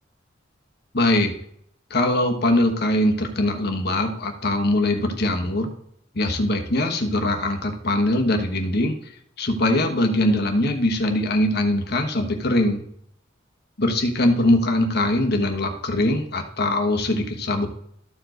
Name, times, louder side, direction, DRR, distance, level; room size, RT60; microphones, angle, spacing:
voice 1, 0.9-1.3 1.9-5.7 6.1-9.0 9.4-12.8 13.8-17.7, left 1 dB, 55° left, 4 dB, 1.3 m, -22 dB
13.5 x 4.9 x 3.9 m, 0.69 s
head